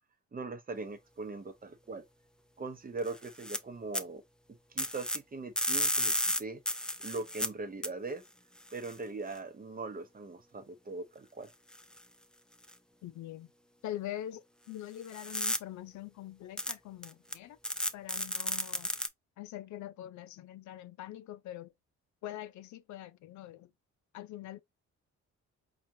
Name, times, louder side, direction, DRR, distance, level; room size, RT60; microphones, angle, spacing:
voice 1, 0.3-2.0 2.6-4.2 4.7-6.1 6.4-6.6 7.0-8.2 8.7-11.5, right 3 dB, 30° right, 0.8 m, -40 dB
sound 1, 3.1-3.6 3.9-4.0 4.8-5.2 5.6-7.5 7.8-7.9 8.8-8.9 11.7-12.0 12.7-12.8 15.1-15.6 16.6-16.7 17.0-17.3 17.6-19.1, left 1 dB, 5° left, 0.5 m, -32 dB
voice 2, 13.0-13.5 13.8-17.6 17.9-18.9 19.4-21.7 22.2-23.7 24.1-24.6, left 13 dB, 70° left, 0.5 m, -43 dB
4.3 x 2.5 x 2.6 m
cardioid pair, 90°, 30 cm